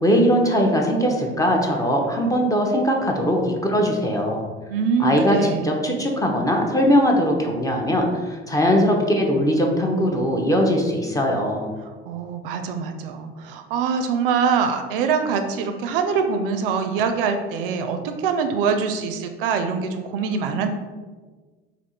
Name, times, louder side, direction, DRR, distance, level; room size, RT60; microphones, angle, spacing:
voice 1, 0.0-4.5 5.0-11.7, equal, 10° left, 1 dB, 0.5 m, -20 dB
voice 2, 4.7-5.7 12.1-20.7, right 6 dB, 60° right, 6 dB, 0.4 m, -24 dB
3.5 x 2.4 x 4.1 m, 1.4 s
figure-of-eight pair, 65°, 32 cm